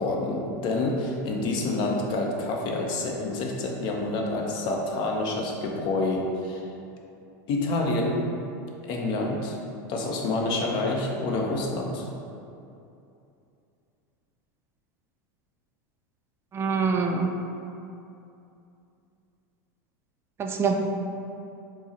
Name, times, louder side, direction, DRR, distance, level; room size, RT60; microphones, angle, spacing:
voice 1, 0.0-6.7 7.5-8.2 8.9-9.6 9.9-12.1, left 2 dB, 50° left, 0 dB, 0.7 m, -28 dB
voice 2, 16.5-17.3 20.4-20.8, right 5 dB, 25° right, 3 dB, 0.3 m, -24 dB
4.6 x 2.0 x 4.1 m, 2.7 s
supercardioid pair, 125°, 10 cm